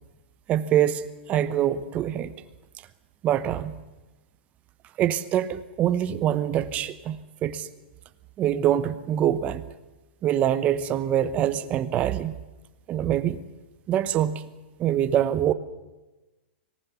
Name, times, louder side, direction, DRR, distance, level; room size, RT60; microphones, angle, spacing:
voice 1, 0.5-2.3 3.2-3.8 5.0-7.7 8.4-9.6 10.2-12.3 12.9-13.4 13.9-14.4 14.8-15.5, right 11 dB, 20° right, 13 dB, 0.9 m, -24 dB
24.5 x 18.5 x 7.1 m, 1.1 s
supercardioid pair, 160°, 6 cm